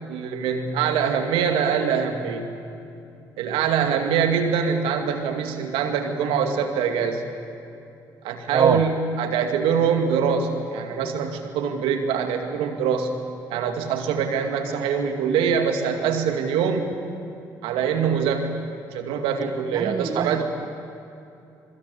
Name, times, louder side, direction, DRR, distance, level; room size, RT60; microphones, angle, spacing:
voice 1, 0.1-2.5 3.4-7.2 8.2-13.1 13.5-17.0 17.6-18.6 18.9-20.4, right 7 dB, 75° right, 5 dB, 2.3 m, -24 dB
voice 2, 8.5-8.8 19.7-20.4, right 6 dB, 40° right, 12 dB, 0.8 m, -23 dB
26.0 x 22.5 x 8.4 m, 2.6 s
hypercardioid pair, 45°, 9 cm